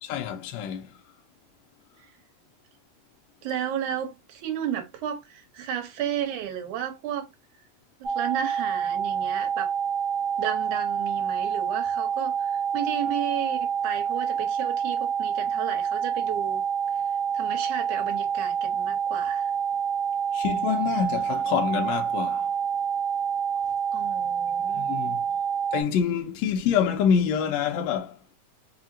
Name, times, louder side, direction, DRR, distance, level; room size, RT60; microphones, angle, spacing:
voice 1, 0.0-0.9 20.3-22.5 24.7-25.2 25.7-28.2, left 7 dB, 80° left, 1.6 m, -26 dB
voice 2, 3.4-7.3 8.0-9.7 10.4-16.6 17.3-19.5 23.9-25.0, right 9 dB, 75° right, 2.3 m, -33 dB
sound 1, 8.0-25.8, right 7 dB, 45° right, 1.4 m, -27 dB
4.9 x 2.8 x 2.6 m
omnidirectional pair, 3.6 m